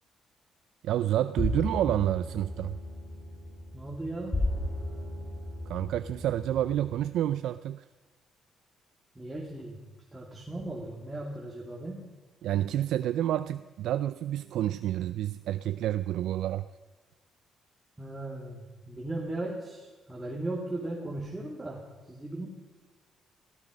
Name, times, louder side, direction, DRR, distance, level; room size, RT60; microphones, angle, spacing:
voice 1, 0.8-2.8 5.7-7.8 12.4-16.7, right 12 dB, 80° right, 13 dB, 0.4 m, -29 dB
sound 1, 1.4-7.0, left 1 dB, 15° left, 5.7 m, -35 dB
voice 2, 3.7-4.4 9.1-9.8 10.1-12.0 18.0-22.5, right 2 dB, 15° right, -3 dB, 2.6 m, -37 dB
17.0 x 14.5 x 5.2 m, 1.3 s
cardioid pair, 90°, 0 cm